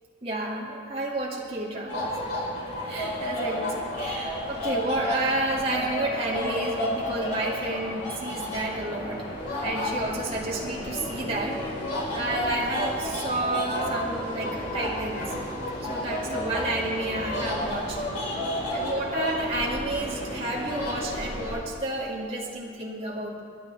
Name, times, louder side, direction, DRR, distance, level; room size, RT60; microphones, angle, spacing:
voice 1, 0.2-2.1 2.9-9.2 9.6-11.6 12.1-15.3 15.8-18.0 18.7-23.4, right 2 dB, 30° right, -5 dB, 2.3 m, -31 dB
sound 1, 1.9-21.6, left 1 dB, 55° left, 4.5 m, -31 dB
28.5 x 11.0 x 3.5 m, 2.4 s
head